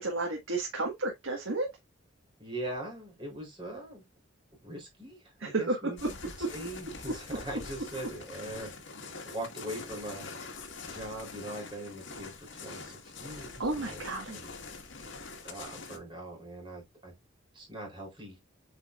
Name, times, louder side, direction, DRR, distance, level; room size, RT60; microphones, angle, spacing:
voice 1, 0.0-1.7 5.4-6.1 6.4-6.5 7.1-7.2 13.6-14.4, right 2 dB, 90° right, 1.7 m, -32 dB
voice 2, 2.4-4.0 4.6-6.0 6.5-8.7 9.3-10.3 10.9-14.0 14.3-14.5 15.4-17.1 17.5-18.4, right 1 dB, 25° right, 3.8 m, -41 dB
sound 1, 6.0-16.0, left 4 dB, 70° left, 1.8 m, -44 dB
7.9 x 5.1 x 2.5 m
head